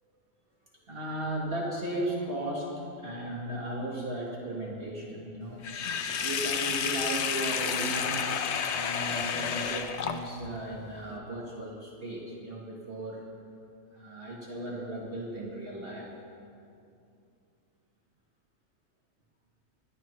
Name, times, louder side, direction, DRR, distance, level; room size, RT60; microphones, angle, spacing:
voice 1, 0.7-5.6 6.2-8.3 8.7-13.2 13.9-16.1, right 1 dB, 40° right, -5 dB, 1.8 m, -36 dB
Sink (filling or washing), 5.6-10.6, left 7 dB, 60° left, 0.9 m, -31 dB
21.0 x 11.5 x 3.2 m, 2.6 s
omnidirectional pair, 1.5 m